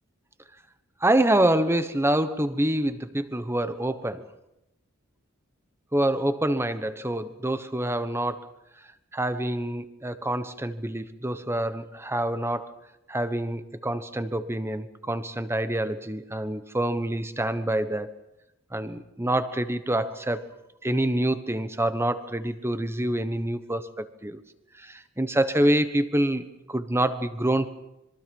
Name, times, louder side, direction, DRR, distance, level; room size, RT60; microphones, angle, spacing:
voice 1, 1.0-4.3 5.9-8.5 9.1-12.7 13.1-18.1 18.7-20.5 20.8-24.4 24.8-27.7, right 1 dB, 10° right, 11 dB, 1.2 m, -26 dB
26.5 x 23.0 x 5.5 m, 0.90 s
head